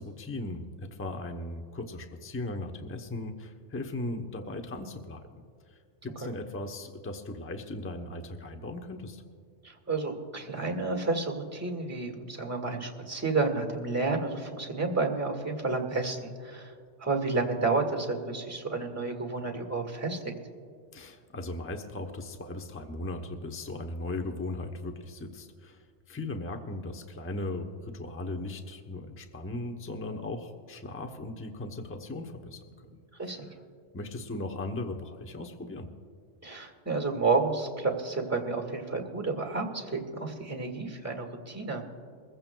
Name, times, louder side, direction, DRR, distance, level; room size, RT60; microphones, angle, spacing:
voice 1, 0.0-5.3 5.7-9.2 20.9-25.8 26.1-33.0 33.2-33.3 33.9-35.9, left 2 dB, 15° left, 4 dB, 0.7 m, -38 dB
voice 2, 9.6-16.7 17.0-20.3 33.2-33.5 36.4-41.8, right 3 dB, 15° right, 3 dB, 1.7 m, -31 dB
22.5 x 15.0 x 2.2 m, 2.2 s
omnidirectional pair, 1.2 m